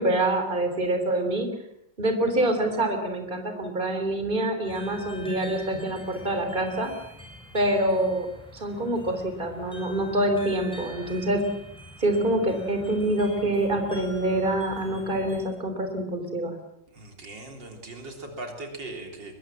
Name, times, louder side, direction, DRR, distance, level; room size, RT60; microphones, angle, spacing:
voice 1, 0.0-1.5 2.0-6.9 7.5-8.3 8.5-11.4 12.0-16.6, right 1 dB, 25° right, 6 dB, 3.8 m, -26 dB
sound 1, 4.6-15.4, equal, 5° left, 7.8 m, -45 dB
voice 2, 16.9-19.4, right 2 dB, 75° right, 4 dB, 4.2 m, -39 dB
23.5 x 22.5 x 7.5 m, 0.78 s
omnidirectional pair, 2.0 m